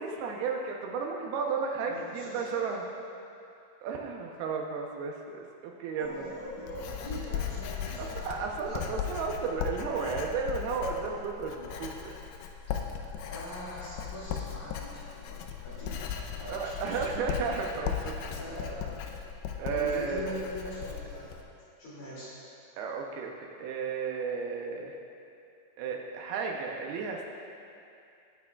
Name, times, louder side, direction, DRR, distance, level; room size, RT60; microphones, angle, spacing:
voice 1, 0.0-2.8 3.8-6.3 8.0-12.1 16.5-18.1 19.6-20.4 22.8-23.3 23.6-25.0 25.8-27.3, right 5 dB, 80° right, 1 dB, 2.6 m, -33 dB
voice 2, 1.8-2.5 6.0-8.4 8.7-8.9 12.9-17.1 18.2-19.1 19.7-21.4 21.8-22.3, equal, 65° left, -10 dB, 4.1 m, -42 dB
Writing, 6.0-21.4, left 8 dB, 85° left, 2.5 m, -37 dB
18.0 x 8.5 x 2.3 m, 2.6 s
omnidirectional pair, 4.7 m